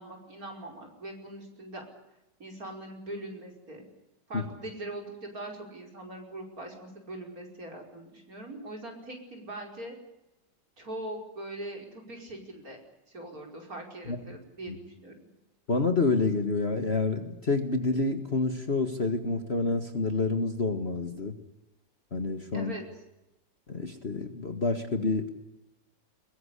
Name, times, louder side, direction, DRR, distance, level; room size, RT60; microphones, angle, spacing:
voice 1, 0.0-1.8 2.4-3.8 4.3-9.9 10.8-12.8 13.1-15.1 22.5-22.8, right 1 dB, 50° right, 2 dB, 5.7 m, -41 dB
voice 2, 15.7-21.3 22.1-22.7 23.7-25.3, left 3 dB, 35° left, 6 dB, 1.8 m, -28 dB
22.0 x 22.0 x 8.3 m, 0.94 s
omnidirectional pair, 2.0 m